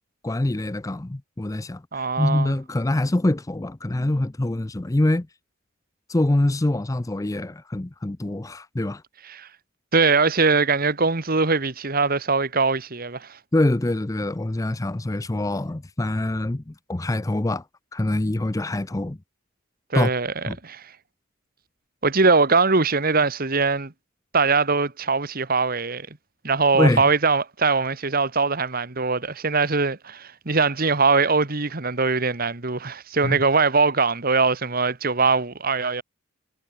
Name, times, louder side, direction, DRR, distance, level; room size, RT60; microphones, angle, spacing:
voice 1, 0.2-5.3 6.1-9.0 13.5-17.6 17.9-19.2 19.9-20.1 20.5-20.6 26.7-27.1 33.2-33.4, left 1 dB, 15° left, 0.5 m, -24 dB
voice 2, 1.9-2.5 9.3-9.5 9.9-13.4 19.9-20.3 20.6-20.9 22.0-23.9 24.3-26.1 26.4-36.0, right 4 dB, 45° right, 1.7 m, -21 dB
head